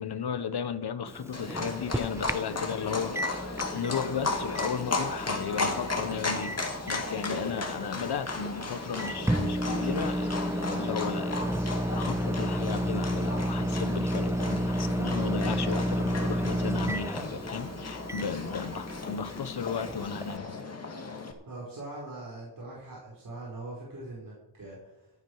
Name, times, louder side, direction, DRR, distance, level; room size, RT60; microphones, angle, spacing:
voice 1, 0.0-3.2 3.7-6.6 6.9-11.6 11.9-20.6, left 7 dB, 50° left, 1.1 m, -35 dB
Microwave oven, 1.1-20.4, equal, 5° right, 0.4 m, -32 dB
Livestock farm animals working animals, 1.3-21.3, left 3 dB, 30° left, 2.2 m, -35 dB
voice 2, 21.5-25.1, right 2 dB, 40° right, 5.0 m, -42 dB
14.5 x 12.5 x 4.8 m
wide cardioid pair, 145°, 49 cm